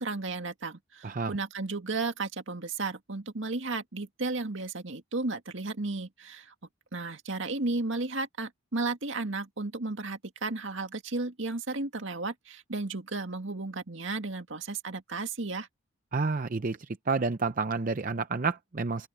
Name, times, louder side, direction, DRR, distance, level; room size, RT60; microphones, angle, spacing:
voice 1, 0.0-6.5 6.9-15.7, right 3 dB, 70° right, 2.0 m, -34 dB
voice 2, 1.0-1.4 16.1-16.8 17.1-19.1, right 4 dB, 40° right, 0.6 m, -29 dB
open air
head